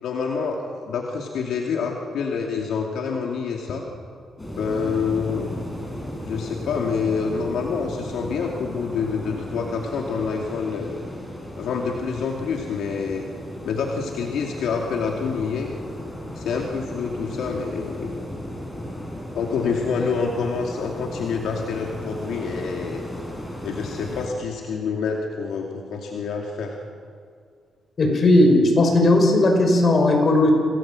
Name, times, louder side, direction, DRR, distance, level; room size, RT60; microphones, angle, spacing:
voice 1, 0.0-3.8 4.6-5.5 6.2-11.0 11.6-13.3 13.6-15.7 16.4-18.2 19.3-23.0 23.6-26.8, left 5 dB, 85° left, 1 dB, 2.5 m, -27 dB
sound 1, 4.4-24.3, left 1 dB, 15° left, 5.5 m, -35 dB
voice 2, 28.0-30.5, left 2 dB, 45° left, 3 dB, 6.1 m, -16 dB
27.5 x 18.5 x 7.7 m, 2.2 s
cardioid pair, 105°, 0 cm